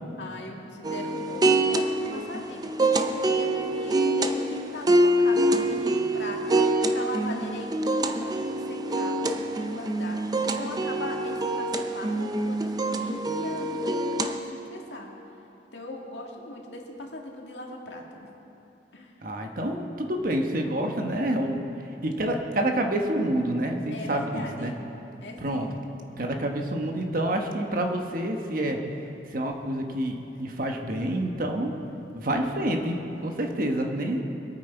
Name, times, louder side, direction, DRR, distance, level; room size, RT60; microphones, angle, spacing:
voice 1, 0.2-6.6 6.9-10.2 10.5-15.1 15.7-18.3 18.9-19.1 23.9-24.8 25.2-25.7 34.2-34.3, left 2 dB, 90° left, 0 dB, 1.9 m, -39 dB
sound 1, 0.8-14.4, right 1 dB, 20° right, 0.6 m, -25 dB
voice 2, 19.2-21.6 22.0-24.7 25.4-25.7 26.2-28.8 29.3-31.7 32.1-34.2, right 1 dB, 50° right, 3 dB, 1.2 m, -28 dB
22.0 x 9.0 x 4.5 m, 2.8 s
head